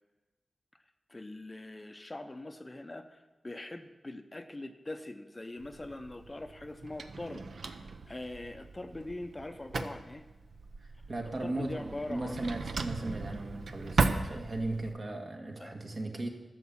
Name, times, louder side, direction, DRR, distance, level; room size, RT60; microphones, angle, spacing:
voice 1, 1.1-7.5 8.1-10.2 11.4-12.4 15.6-15.7, left 2 dB, 20° left, 8 dB, 0.6 m, -42 dB
Drawer open or close, 5.6-14.9, right 4 dB, 65° right, 0.7 m, -37 dB
voice 2, 10.8-16.3, right 2 dB, 45° right, 2 dB, 1.7 m, -37 dB
12.5 x 7.1 x 7.2 m, 1.2 s
wide cardioid pair, 125°, 0 cm